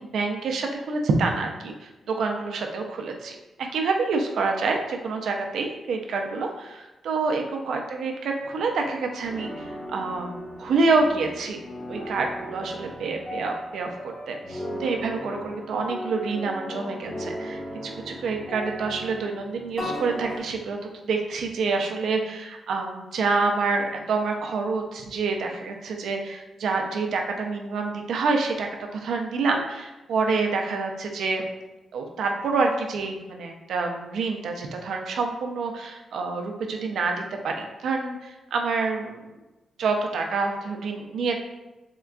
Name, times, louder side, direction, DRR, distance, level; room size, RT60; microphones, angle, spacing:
voice 1, 0.0-1.7 2.2-11.6 11.9-20.8 21.1-28.7 28.9-31.4 31.9-39.2 39.8-41.4, right 4 dB, 75° right, 3 dB, 0.4 m, -27 dB
sound 1, 8.4-20.4, equal, 15° left, 0.5 m, -36 dB
3.6 x 2.2 x 2.4 m, 1.1 s
wide cardioid pair, 170°, 0 cm